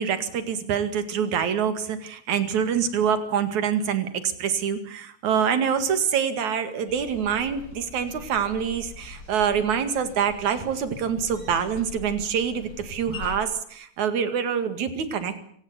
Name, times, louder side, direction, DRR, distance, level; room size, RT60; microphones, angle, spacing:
voice 1, 0.0-15.4, right 7 dB, 55° right, 10 dB, 3.1 m, -25 dB
sound 1, 6.9-13.4, left 5 dB, 45° left, 8.8 m, -43 dB
25.5 x 17.5 x 8.2 m, 0.63 s
omnidirectional pair, 4.5 m